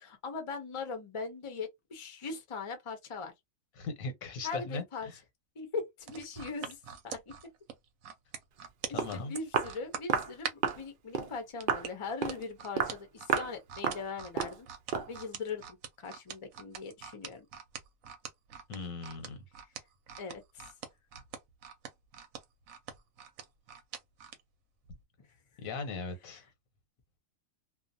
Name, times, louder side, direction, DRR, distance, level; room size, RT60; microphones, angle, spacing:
voice 1, 0.0-3.3 4.4-5.1 5.6-6.8 7.0-7.3 8.9-14.7 15.1-17.5 20.2-20.7 26.3-26.4, left 4 dB, 35° left, 0.6 m, -40 dB
voice 2, 3.8-5.2 8.9-9.3 18.7-19.4 25.6-26.4, left 3 dB, 85° left, 1.3 m, -39 dB
sound 1, 6.0-10.8 11.6-24.4 24.8-25.0, right 8 dB, 90° right, 1.0 m, -43 dB
Walk footsteps, 8.7-8.8 9.0-9.2 9.5-9.8 10.1-10.3 10.6-10.8 11.1-11.3 11.7-11.9 12.2-12.4 12.8-13.0 13.3-13.5 13.8-14.1 14.4-14.6 14.9-15.1, right 7 dB, 65° right, 0.5 m, -31 dB
2.5 x 2.3 x 2.6 m
omnidirectional pair, 1.4 m